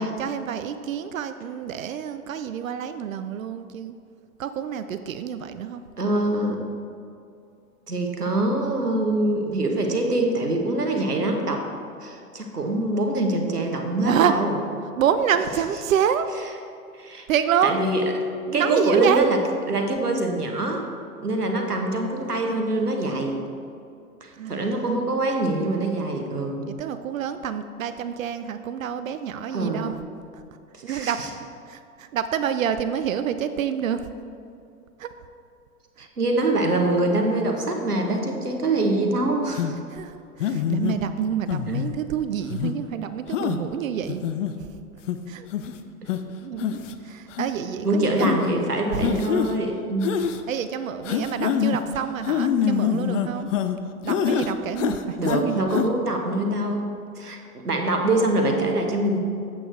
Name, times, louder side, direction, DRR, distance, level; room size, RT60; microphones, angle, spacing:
voice 1, 0.0-3.9 4.4-5.8 14.1-14.4 15.0-16.3 17.3-17.8 18.5-19.3 24.4-24.9 26.7-30.0 30.3-30.4 30.8-34.1 35.0-35.1 36.0-36.1 39.9-44.3 44.7-44.8 45.3-45.5 46.4-49.0 50.5-53.5 54.0-55.6, right 8 dB, 60° right, 10 dB, 0.5 m, -27 dB
voice 2, 6.0-6.6 7.9-11.6 12.0-14.5 16.9-17.2 17.6-18.1 18.5-19.4 19.7-20.9 21.2-23.4 24.2-26.7 29.5-29.9 30.7-31.3 36.0-39.8 46.0-46.1 47.8-50.2 55.2-59.2, right 2 dB, 90° right, 2 dB, 1.1 m, -24 dB
sound 1, 39.6-39.7 40.4-41.0 41.5-41.9 42.5-42.7 43.3-43.6 44.1-44.5 45.1-45.2 45.5-45.7 46.1-46.2 46.6-46.9 47.3-47.5 48.2-48.4 49.0-49.5 50.0-50.4 51.0-51.8 52.2-53.8 54.1-54.5 54.8-55.4 55.7-55.9, left 8 dB, 55° left, 0.6 m, -25 dB
8.4 x 7.9 x 3.3 m, 2.5 s
figure-of-eight pair, 95°, 45 cm